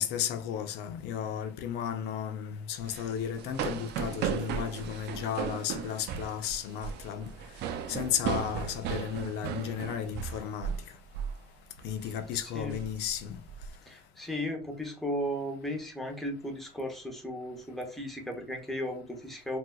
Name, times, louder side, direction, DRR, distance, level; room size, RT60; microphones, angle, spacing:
voice 1, 0.0-7.3 7.9-10.7 11.8-13.4, left 9 dB, 90° left, 0.5 m, -34 dB
sound 1, 2.8-10.9 11.1-11.4 11.8-12.1 12.6-13.7, right 8 dB, 80° right, 0.5 m, -36 dB
voice 2, 13.9-19.6, equal, ahead, 1.0 m, -35 dB
3.8 x 2.4 x 2.3 m
cardioid pair, 110°, 17 cm